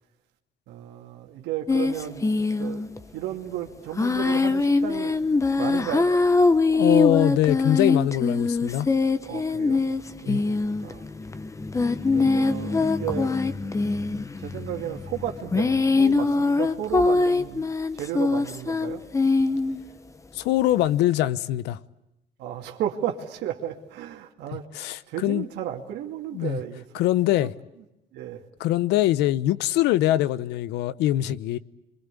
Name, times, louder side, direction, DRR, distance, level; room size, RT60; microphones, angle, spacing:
voice 1, 0.7-2.3 2.6-2.8 3.1-5.2 5.6-6.1 9.2-9.8 10.2-11.0 12.1-13.3 14.4-19.0 22.4-26.8 27.4-27.5 28.1-28.4, right 11 dB, 85° right, 2.4 m, -34 dB
sound 1, 1.7-3.0 4.0-19.8, left 3 dB, 20° left, 1.2 m, -23 dB
voice 2, 6.7-8.9 10.3-10.4 20.3-21.8 24.7-25.5 26.3-26.6 26.9-27.5 28.6-31.6, left 14 dB, 90° left, 0.9 m, -23 dB
27.5 x 24.0 x 8.4 m
cardioid pair, 110°, 17 cm